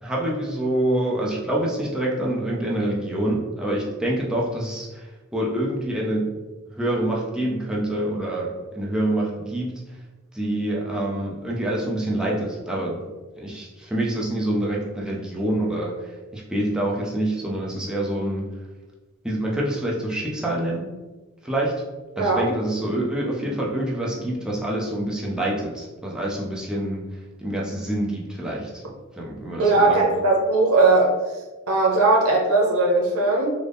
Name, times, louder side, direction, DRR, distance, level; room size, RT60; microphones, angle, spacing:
voice 1, 0.0-5.0 5.3-6.3 6.8-9.7 10.3-13.0 13.4-15.9 16.3-18.5 19.2-20.9 21.4-21.7 22.2-27.0 27.4-28.8 29.2-30.0, right 1 dB, 5° right, -4 dB, 0.5 m, -26 dB
voice 2, 22.2-22.5 29.6-31.1 31.7-33.5, right 2 dB, 90° right, -2 dB, 0.8 m, -18 dB
3.8 x 2.0 x 3.4 m, 1.2 s
head